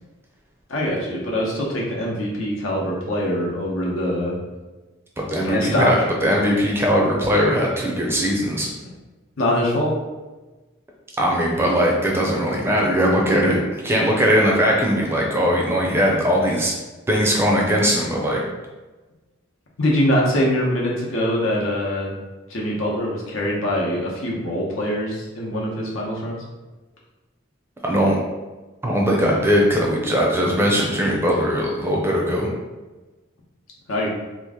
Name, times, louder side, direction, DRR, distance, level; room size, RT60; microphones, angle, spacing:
voice 1, 0.7-4.4 5.4-5.9 9.4-9.9 19.8-22.1 22.5-26.4 33.9-34.1, left 1 dB, 85° left, -3 dB, 0.9 m, -23 dB
voice 2, 5.2-8.7 11.2-16.7 17.1-18.4 27.8-28.2 28.8-32.5, equal, 10° right, -2 dB, 0.4 m, -20 dB
3.0 x 2.5 x 3.5 m, 1.2 s
head